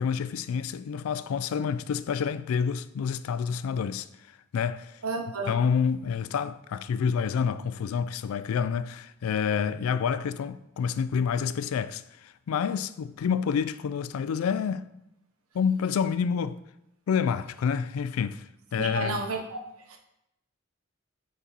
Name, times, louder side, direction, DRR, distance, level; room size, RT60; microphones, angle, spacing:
voice 1, 0.0-5.0 5.5-14.9 15.5-16.6 17.1-19.2, left 6 dB, 85° left, 0.3 m, -28 dB
voice 2, 5.0-5.6 18.8-19.4 19.9-20.0, right 3 dB, 90° right, 0.9 m, -31 dB
5.8 x 4.3 x 4.1 m
head